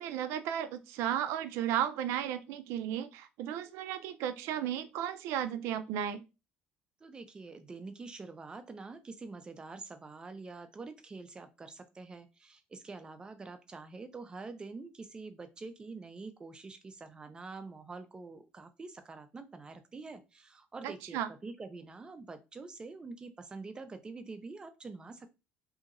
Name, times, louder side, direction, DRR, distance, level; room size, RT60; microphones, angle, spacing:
voice 1, 0.0-6.2 20.8-21.3, right 10 dB, 80° right, 0.4 m, -34 dB
voice 2, 7.0-25.3, right 3 dB, 20° right, 0.4 m, -46 dB
2.9 x 2.7 x 2.5 m
cardioid pair, 130°, 4 cm